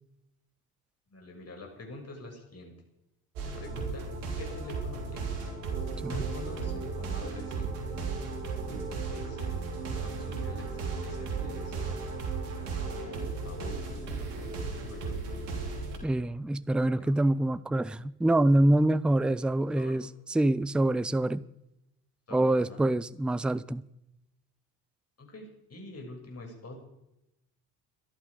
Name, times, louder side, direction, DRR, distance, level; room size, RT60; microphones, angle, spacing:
voice 1, 1.1-2.7 3.4-4.1 4.3-5.5 6.1-7.8 8.5-9.6 9.9-11.7 12.7-15.2 16.9-17.1 19.8-20.0 22.3-22.8 25.2-26.8, left 1 dB, 30° left, 6.6 m, -46 dB
sound 1, 3.4-16.0, right 4 dB, 70° right, 3.3 m, -35 dB
voice 2, 16.0-21.4 22.3-23.8, right 1 dB, ahead, 0.5 m, -26 dB
23.0 x 11.5 x 5.0 m
figure-of-eight pair, 50°, 46 cm